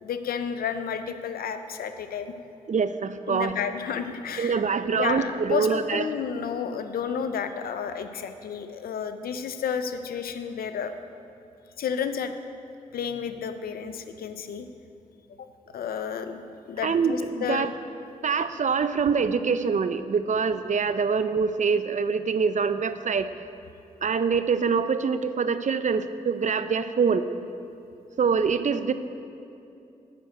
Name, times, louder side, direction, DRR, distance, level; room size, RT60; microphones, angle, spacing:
voice 1, 0.0-2.3 3.3-4.6 5.0-10.9 11.8-12.4 12.9-14.7 15.4-15.5 15.7-16.4 16.7-17.7, left 7 dB, 90° left, 9 dB, 0.5 m, -31 dB
voice 2, 2.7-3.6 4.4-6.0 16.8-17.7 18.2-23.3 24.0-27.3 28.2-28.9, right 5 dB, 55° right, 11 dB, 0.5 m, -25 dB
7.5 x 6.4 x 7.9 m, 2.6 s
cardioid pair, 40°, 15 cm